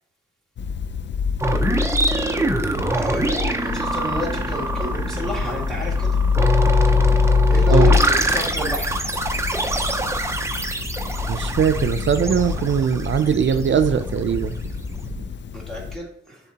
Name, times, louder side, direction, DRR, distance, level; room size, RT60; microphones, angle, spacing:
sound 1, 0.6-16.0, left 5 dB, 65° left, 0.4 m, -24 dB
sound 2, 1.4-14.1, right 2 dB, 15° right, 0.5 m, -25 dB
voice 1, 2.9-6.1 7.5-9.1 15.5-16.4, equal, ahead, -3 dB, 2.0 m, -29 dB
sound 3, 4.1-15.3, left 1 dB, 90° left, 1.9 m, -35 dB
voice 2, 11.3-14.6, right 7 dB, 70° right, 9 dB, 0.4 m, -20 dB
11.0 x 3.6 x 2.8 m, 0.72 s
wide cardioid pair, 135°, 20 cm